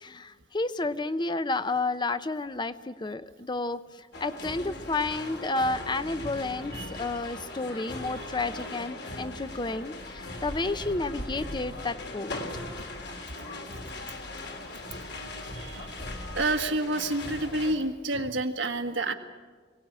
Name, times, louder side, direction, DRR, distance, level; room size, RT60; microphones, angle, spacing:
voice 1, 0.0-3.8 4.2-6.7 7.0-12.4 18.1-18.2, left 3 dB, 25° left, 13 dB, 0.6 m, -31 dB
sound 1, 4.1-17.7, left 2 dB, 60° left, 3.1 m, -39 dB
voice 2, 15.5-15.9 16.3-19.1, right 2 dB, 90° right, 6 dB, 1.7 m, -29 dB
23.5 x 18.0 x 8.8 m, 1.5 s
head